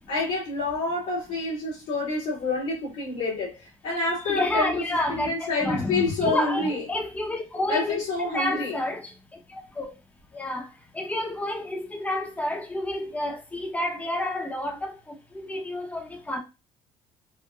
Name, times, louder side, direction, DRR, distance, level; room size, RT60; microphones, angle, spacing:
voice 1, 0.1-4.7 5.1-6.8 7.7-8.8, left 3 dB, 85° left, 2.1 m, -28 dB
voice 2, 4.2-9.1 9.8-9.9 10.3-10.7 10.9-15.0 15.4-16.4, left 1 dB, 10° left, 0.8 m, -29 dB
4.6 x 2.1 x 2.4 m
cardioid pair, 90°, 12 cm